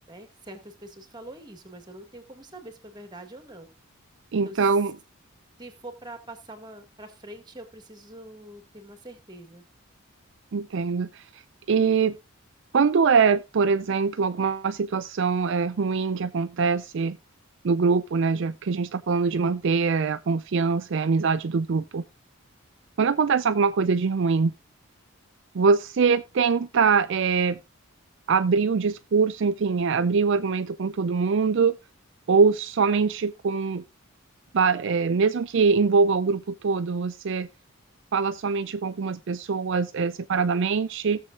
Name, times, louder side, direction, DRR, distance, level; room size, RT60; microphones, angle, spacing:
voice 1, 0.1-3.7 4.4-4.6 5.6-9.6, right 1 dB, 20° right, 1.9 m, -44 dB
voice 2, 4.3-4.9 10.5-11.2 11.7-12.1 12.7-17.2 17.6-22.0 23.0-24.5 25.5-27.6 28.3-31.7 32.3-33.8 34.5-37.5 38.1-41.2, right 5 dB, 60° right, 0.4 m, -23 dB
17.5 x 6.9 x 2.5 m
head